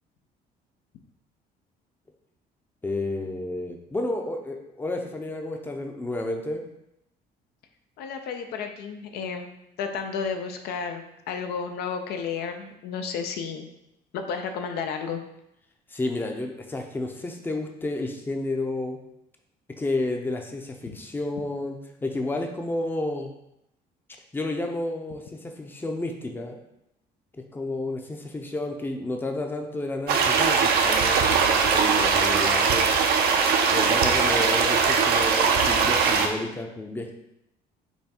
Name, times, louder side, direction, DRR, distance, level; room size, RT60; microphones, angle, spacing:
voice 1, 2.8-6.6 15.9-19.0 19.8-23.3 24.3-26.6 27.5-32.9 33.7-37.1, left 2 dB, 10° left, 3 dB, 0.6 m, -31 dB
voice 2, 8.0-9.5 9.8-13.7 14.1-15.2 20.9-21.0, left 6 dB, 75° left, 6 dB, 0.5 m, -32 dB
sound 1, 30.1-36.3, right 5 dB, 70° right, 0.6 m, -21 dB
5.5 x 2.2 x 4.3 m, 0.82 s
cardioid pair, 110°, 17 cm